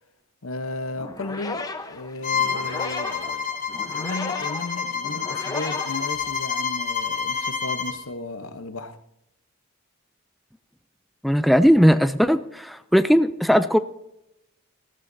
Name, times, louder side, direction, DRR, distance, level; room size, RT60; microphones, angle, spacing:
voice 1, 0.4-3.6 3.8-9.0, left 2 dB, 75° left, 0.9 m, -34 dB
sound 1, 1.0-6.8, left 3 dB, 15° left, 0.8 m, -35 dB
Bowed string instrument, 2.2-8.0, left 6 dB, 40° left, 1.1 m, -28 dB
voice 2, 11.2-13.8, equal, ahead, 0.3 m, -18 dB
19.0 x 14.0 x 2.7 m
head